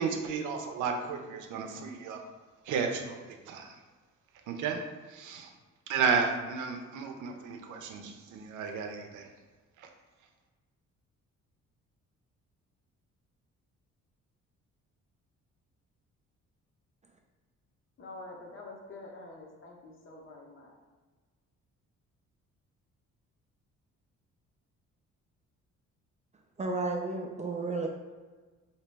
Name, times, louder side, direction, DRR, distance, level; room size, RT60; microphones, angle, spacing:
voice 1, 0.0-2.2 2.6-3.8 4.5-4.8 5.1-5.5 5.9-9.3 9.8-9.9, right 5 dB, 80° right, 4 dB, 0.6 m, -33 dB
voice 2, 18.0-20.7, left 2 dB, 45° left, -1 dB, 0.8 m, -47 dB
voice 3, 26.6-27.9, right 3 dB, 25° right, 1 dB, 0.3 m, -32 dB
3.0 x 2.8 x 3.3 m, 1.3 s
cardioid pair, 90°, 30 cm